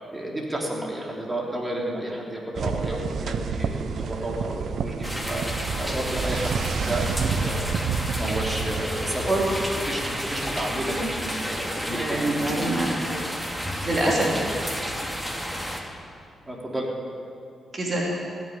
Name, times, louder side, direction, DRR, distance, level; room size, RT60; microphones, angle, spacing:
voice 1, 0.1-5.4 5.8-7.7 8.2-9.3 9.8-12.6 13.9-14.3 16.5-16.9, right 1 dB, 25° right, -2 dB, 3.5 m, -31 dB
sound 1, 2.5-8.8, right 6 dB, 70° right, 0.6 m, -29 dB
sound 2, 5.0-15.8, equal, 5° right, 2.8 m, -31 dB
voice 2, 11.9-13.2 13.8-14.2 17.7-18.1, right 1 dB, 45° right, -3 dB, 3.2 m, -25 dB
16.0 x 7.0 x 9.7 m, 2.6 s
supercardioid pair, 45°, 0 cm